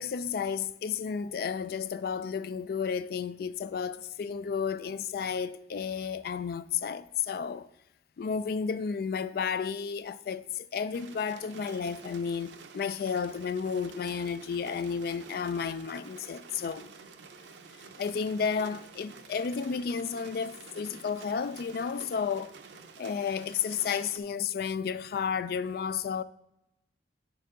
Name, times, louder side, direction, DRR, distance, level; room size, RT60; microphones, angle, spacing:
voice 1, 0.0-7.7 8.2-16.9 18.0-22.5 23.0-26.2, left 6 dB, 55° left, 0.3 m, -32 dB
sound 1, 10.9-24.2, right 4 dB, 90° right, 0.6 m, -50 dB
9.1 x 6.8 x 3.7 m
head